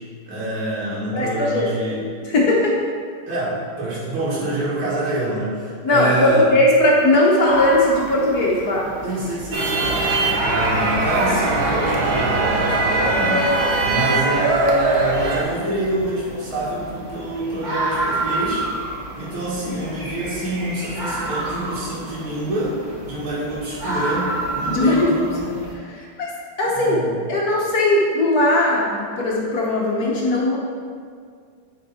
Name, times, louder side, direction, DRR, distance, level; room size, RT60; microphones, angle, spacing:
voice 1, 0.2-2.1 3.3-6.5 9.0-18.7 19.1-25.4 26.7-27.2, right 1 dB, 80° right, -10 dB, 2.9 m, -26 dB
voice 2, 1.1-1.8 2.2-2.8 5.8-8.9 24.7-25.1 25.8-27.0 27.3-30.6, left 1 dB, 55° left, -2 dB, 1.3 m, -19 dB
sound 1, 7.4-25.7, right 1 dB, 30° right, 0.9 m, -30 dB
sound 2, 9.5-15.4, right 2 dB, 60° right, 1.2 m, -21 dB
9.0 x 4.6 x 4.2 m, 2.1 s
omnidirectional pair, 2.2 m